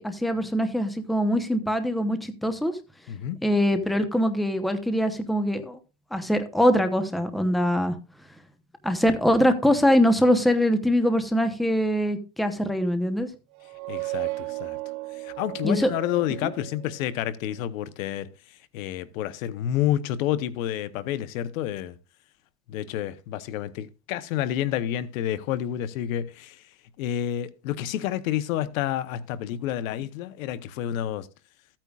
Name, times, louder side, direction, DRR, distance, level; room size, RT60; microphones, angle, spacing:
voice 1, 0.0-2.7 3.4-5.8 6.1-8.0 8.8-13.3 15.6-15.9, equal, ahead, 0.8 m, -23 dB
voice 2, 3.1-3.4 13.9-14.8 15.1-18.3 18.7-21.9 22.7-26.6 27.0-31.3, left 11 dB, 80° left, 1.0 m, -29 dB
sound 1, 13.5-17.1, right 23 dB, 45° right, 0.9 m, -35 dB
14.5 x 8.9 x 2.4 m
supercardioid pair, 135°, 40 cm